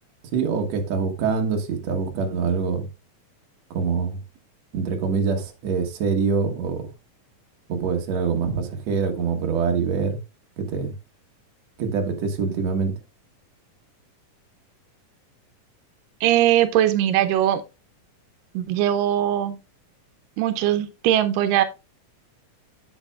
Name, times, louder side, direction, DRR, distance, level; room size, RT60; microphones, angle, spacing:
voice 1, 0.3-2.9 3.7-4.2 4.7-6.9 7.7-10.2 10.6-10.9 11.8-12.9, right 5 dB, 60° right, 2.2 m, -24 dB
voice 2, 16.2-17.6 18.5-19.6 20.4-21.6, right 12 dB, 85° right, 2.3 m, -20 dB
8.9 x 8.1 x 2.3 m
omnidirectional pair, 3.8 m